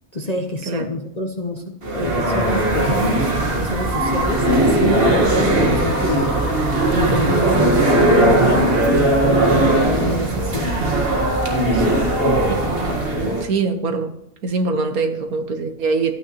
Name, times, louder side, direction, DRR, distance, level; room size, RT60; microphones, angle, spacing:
voice 1, 0.1-1.6 1.9-3.3 3.6-6.3 6.9-10.8 11.7-12.0, left 1 dB, 35° left, 3 dB, 0.7 m, -26 dB
sound 1, 1.8-13.4, right 1 dB, 40° right, 1.7 m, -18 dB
voice 2, 13.4-14.1 14.4-16.1, right 4 dB, 65° right, 6 dB, 1.6 m, -22 dB
12.5 x 9.2 x 3.0 m, 0.80 s
omnidirectional pair, 1.7 m